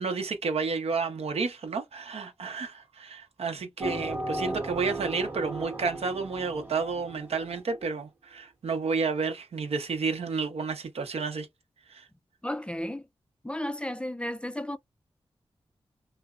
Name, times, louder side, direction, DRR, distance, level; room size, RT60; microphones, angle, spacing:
voice 1, 0.0-11.5 11.9-12.0, right 4 dB, 85° right, 0.7 m, -31 dB
sound 1, 3.8-7.8, right 2 dB, 20° right, 0.8 m, -36 dB
voice 2, 12.4-13.0 13.4-14.8, left 1 dB, 10° left, 0.3 m, -33 dB
3.2 x 2.0 x 2.3 m
cardioid pair, 50°, 10 cm